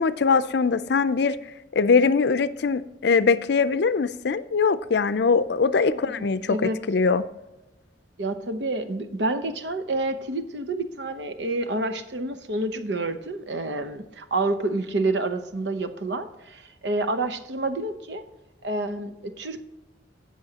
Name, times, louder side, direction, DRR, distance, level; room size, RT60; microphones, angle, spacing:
voice 1, 0.0-1.4 1.7-7.2, left 5 dB, 65° left, 0.5 m, -22 dB
voice 2, 5.7-6.8 8.2-18.2 18.6-19.6, right 2 dB, 70° right, 0.8 m, -28 dB
17.0 x 6.3 x 2.9 m
head